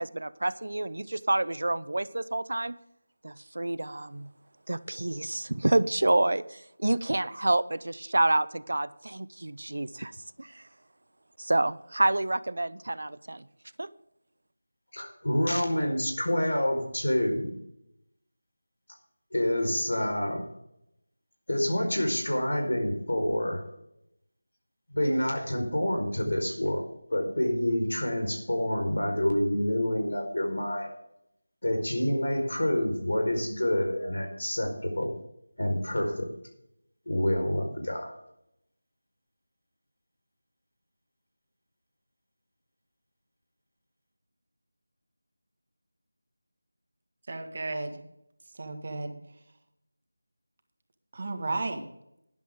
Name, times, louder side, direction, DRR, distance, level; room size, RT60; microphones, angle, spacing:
voice 1, 0.0-2.8 3.2-4.3 4.7-10.1 10.4-10.7 11.4-13.4 13.8-13.9, right 2 dB, 70° right, 17 dB, 0.7 m, -28 dB
voice 2, 14.9-17.5 19.3-20.4 21.5-23.6 24.9-30.9 31.6-35.1 35.6-36.3 37.1-38.1, left 1 dB, 85° left, 3 dB, 4.8 m, -27 dB
voice 3, 47.3-48.0 48.5-49.1 51.1-51.9, right 2 dB, 40° right, 6 dB, 1.7 m, -33 dB
12.5 x 11.0 x 3.8 m, 0.79 s
figure-of-eight pair, 175°, 0 cm